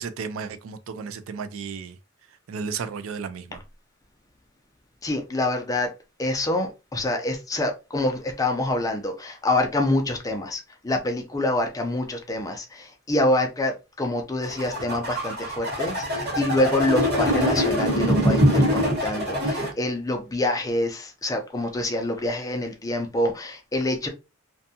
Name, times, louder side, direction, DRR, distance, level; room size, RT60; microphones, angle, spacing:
voice 1, 0.0-2.0 2.5-3.6, right 5 dB, 75° right, 0.3 m, -33 dB
voice 2, 5.0-5.9 6.2-24.1, left 1 dB, 15° left, 0.4 m, -26 dB
sound 1, 14.4-19.7, equal, 50° right, 1.1 m, -23 dB
2.6 x 2.3 x 2.6 m
head